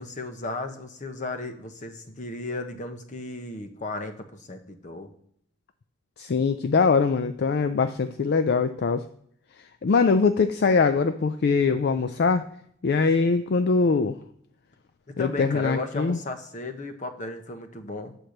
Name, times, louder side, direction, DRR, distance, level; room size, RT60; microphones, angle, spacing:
voice 1, 0.0-5.1 15.1-18.1, left 2 dB, 40° left, 7 dB, 1.1 m, -35 dB
voice 2, 6.2-9.1 9.8-12.5 12.8-14.2 15.2-16.2, left 4 dB, 55° left, 10 dB, 0.4 m, -22 dB
8.5 x 4.5 x 6.5 m, 0.67 s
head